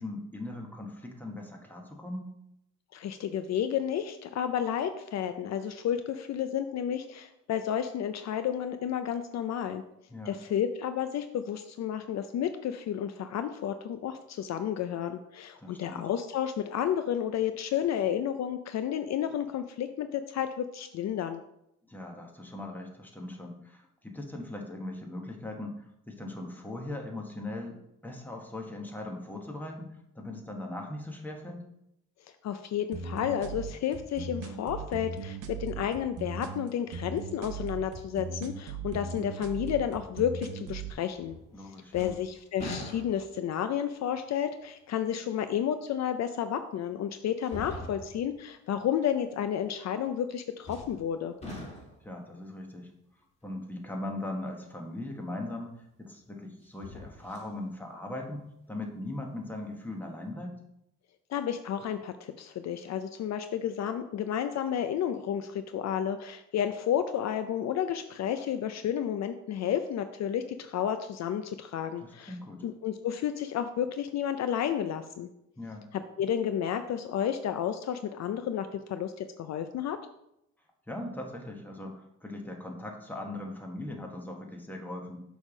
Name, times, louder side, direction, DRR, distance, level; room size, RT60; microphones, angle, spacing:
voice 1, 0.0-2.3 10.1-10.4 15.6-16.1 21.8-31.6 41.5-42.2 52.0-52.9 53.4-60.5 72.0-72.6 75.6-75.8 80.9-85.2, left 1 dB, 5° left, 1 dB, 1.4 m, -39 dB
voice 2, 2.9-9.8 10.3-21.4 32.4-41.4 41.9-51.3 61.3-72.3 72.6-75.3 75.9-80.0, left 9 dB, 60° left, 9 dB, 0.5 m, -31 dB
sound 1, 32.9-40.9, right 5 dB, 80° right, 0.9 m, -39 dB
sound 2, 41.2-41.6 41.9-43.5 44.1-44.2 46.1-46.2 47.4-48.3 50.6-51.1 51.4-52.1 55.1-55.2 56.6-57.5 58.0-58.1, left 1 dB, 20° left, 2.4 m, -42 dB
6.3 x 3.5 x 6.0 m, 0.80 s
cardioid pair, 90°, 30 cm